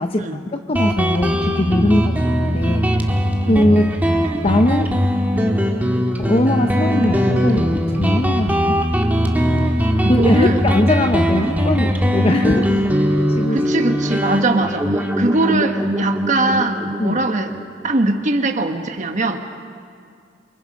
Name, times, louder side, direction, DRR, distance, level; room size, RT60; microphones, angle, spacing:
voice 1, 0.0-3.1 3.5-3.9 4.4-4.9 6.2-8.8 10.1-12.9 13.3-13.7 17.0-17.2, left 1 dB, 35° left, 5 dB, 0.7 m, -20 dB
Guitar, 0.8-18.0, equal, 10° right, 1.6 m, -20 dB
voice 2, 10.0-10.6 13.5-17.5 17.8-19.4, right 2 dB, 40° right, 5 dB, 1.3 m, -21 dB
28.0 x 24.0 x 5.3 m, 2.2 s
head